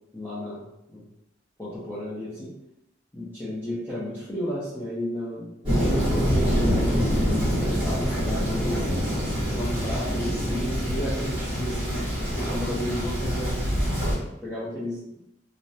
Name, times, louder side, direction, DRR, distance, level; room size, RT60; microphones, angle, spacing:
voice 1, 0.1-0.6 0.9-1.0 1.6-2.5 3.1-7.1 7.4-9.0 9.5-13.6 14.4-15.0, equal, 10° left, -9 dB, 0.5 m, -33 dB
Thunder, 5.6-14.1, equal, 30° right, 1.1 m, -25 dB
2.3 x 2.1 x 2.7 m, 0.86 s
head